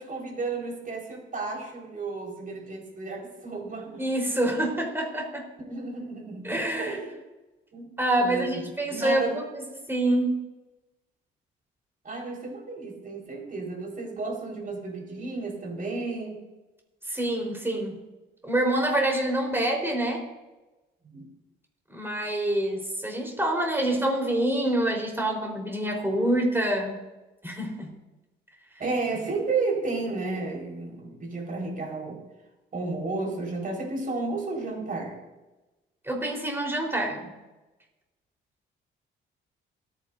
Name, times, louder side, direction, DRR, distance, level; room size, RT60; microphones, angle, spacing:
voice 1, 0.0-4.0 5.7-6.5 6.8-7.1 7.7-7.9 8.2-9.4 12.0-16.4 21.0-21.3 28.8-32.2 32.7-35.2, right 3 dB, 45° right, -1 dB, 5.0 m, -32 dB
voice 2, 4.0-5.5 6.4-7.0 8.0-10.4 17.1-18.0 18.4-20.3 21.9-27.1 27.4-27.9 36.0-37.3, right 1 dB, 10° right, 0 dB, 4.3 m, -26 dB
27.0 x 9.8 x 2.7 m, 1.1 s
cardioid pair, 90°, 20 cm